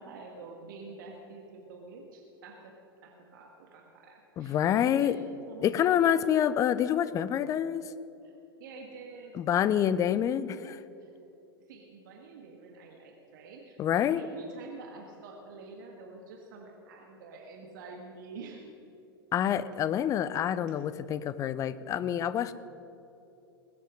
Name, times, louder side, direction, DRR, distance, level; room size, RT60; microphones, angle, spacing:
voice 1, 0.0-2.7 3.0-5.1 5.5-6.3 8.2-9.4 9.7-9.8 11.0-11.2 11.7-18.7, right 4 dB, 55° right, 1 dB, 1.6 m, -47 dB
voice 2, 4.4-5.2 5.6-7.9 9.3-10.8 13.8-14.2 19.3-22.5, left 10 dB, 25° left, 15 dB, 0.6 m, -27 dB
21.0 x 8.4 x 6.3 m, 2.9 s
figure-of-eight pair, 90°, 13 cm